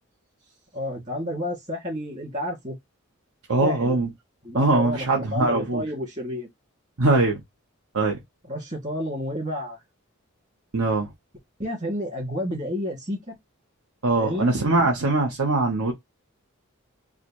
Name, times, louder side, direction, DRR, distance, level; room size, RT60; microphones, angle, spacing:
voice 1, 0.7-2.8 3.6-4.0 4.4-6.5 8.5-9.8 11.6-13.4 14.2-14.5, left 1 dB, 35° right, 2.3 m, -30 dB
voice 2, 3.5-4.1 4.5-5.8 7.0-7.4 7.9-8.2 10.7-11.1 14.0-15.9, right 2 dB, 80° right, 1.0 m, -22 dB
4.8 x 2.3 x 3.0 m
head